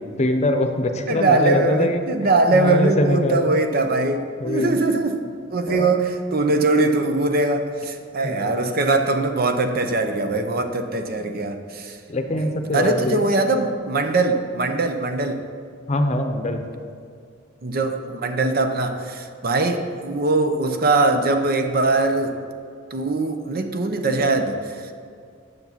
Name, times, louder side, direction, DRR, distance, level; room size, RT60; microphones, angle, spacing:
voice 1, 0.2-3.6 4.4-4.8 5.7-5.9 8.2-8.6 12.1-13.3 15.9-16.6, left 1 dB, 35° left, 6 dB, 0.7 m, -23 dB
voice 2, 1.1-5.2 5.5-12.0 12.7-15.4 17.6-22.4 22.9-24.9, right 2 dB, 50° right, 7 dB, 0.7 m, -21 dB
9.7 x 6.7 x 5.8 m, 2.3 s
head